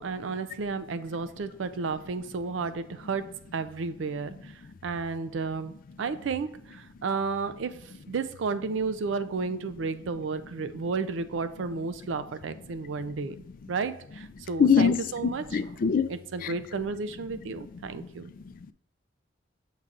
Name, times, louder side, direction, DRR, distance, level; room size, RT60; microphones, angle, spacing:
voice 1, 0.0-5.7 6.0-15.7 16.1-18.3, right 4 dB, 80° right, 0.4 m, -32 dB
voice 2, 14.6-16.1 16.4-16.5, left 6 dB, 45° left, 0.3 m, -23 dB
7.9 x 5.5 x 2.5 m
head